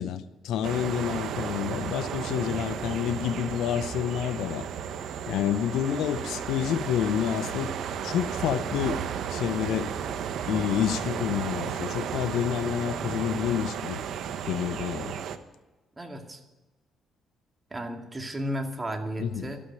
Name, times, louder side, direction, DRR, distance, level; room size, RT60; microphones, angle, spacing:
voice 1, 0.0-4.7 5.3-7.7 8.0-9.0 9.3-9.9 10.5-14.0 14.5-15.1 19.2-19.5, left 10 dB, 85° left, 0.7 m, -28 dB
sound 1, 0.6-15.4, right 8 dB, 75° right, 0.9 m, -33 dB
voice 2, 16.0-16.4 17.7-19.6, equal, 20° right, 2.3 m, -34 dB
13.0 x 8.7 x 9.2 m
cardioid pair, 90°, 0 cm